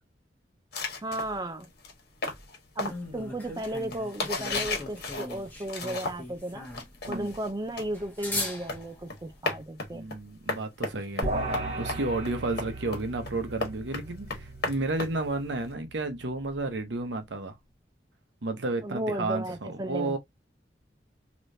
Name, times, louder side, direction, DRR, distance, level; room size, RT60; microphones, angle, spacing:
sound 1, 0.7-6.4 6.6-15.7, left 3 dB, 60° left, 1.3 m, -35 dB
voice 1, 1.0-1.7 2.8-6.7 7.1-10.1 18.8-20.2, right 1 dB, 20° right, 0.5 m, -34 dB
sound 2, 2.9-9.3, left 2 dB, 10° left, 1.2 m, -39 dB
voice 2, 9.9-17.5 18.4-20.2, right 2 dB, 85° right, 0.9 m, -32 dB
sound 3, 11.2-16.7, right 1 dB, 40° right, 1.3 m, -37 dB
3.3 x 3.0 x 2.6 m
head